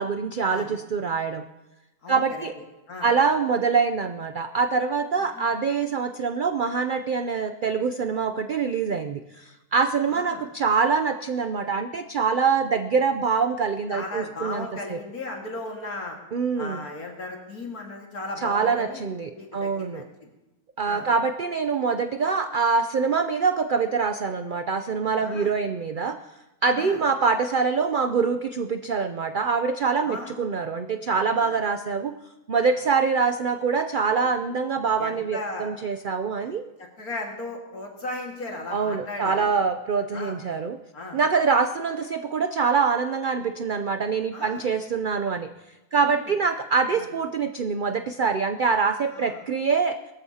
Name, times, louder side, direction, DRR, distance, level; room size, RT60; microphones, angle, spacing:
voice 1, 0.0-1.4 2.1-2.5 3.0-15.0 16.3-16.8 18.4-20.0 20.8-26.2 26.6-32.1 32.5-36.7 38.7-40.8 41.1-45.5 45.9-50.0, right 5 dB, 80° right, 8 dB, 0.4 m, -24 dB
voice 2, 2.0-2.4 2.9-3.1 5.2-5.5 10.1-10.4 13.9-16.2 16.6-19.1 19.4-20.3 20.8-21.1 25.2-25.5 26.8-27.0 30.0-30.3 31.3-31.6 35.0-35.7 36.4-36.5 36.8-39.5 40.1-40.4 40.9-41.2 44.3-44.7 45.9-46.1 46.9-47.1 49.1-49.5, left 2 dB, 75° left, 0 dB, 2.3 m, -36 dB
22.5 x 13.5 x 2.8 m, 1.0 s
omnidirectional pair, 1.6 m